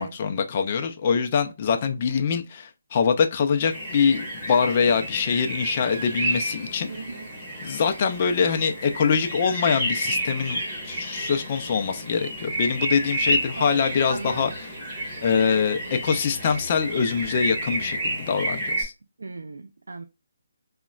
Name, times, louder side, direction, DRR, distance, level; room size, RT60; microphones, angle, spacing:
voice 1, 0.0-6.9 7.6-14.5 15.2-18.9, left 6 dB, 25° left, 0.3 m, -24 dB
sound 1, 3.7-18.8, right 1 dB, 15° right, 1.2 m, -31 dB
voice 2, 6.9-7.3 8.4-8.6 13.6-14.6 19.2-20.1, right 3 dB, 85° right, 0.3 m, -36 dB
3.8 x 2.1 x 2.3 m
hypercardioid pair, 175°, 0 cm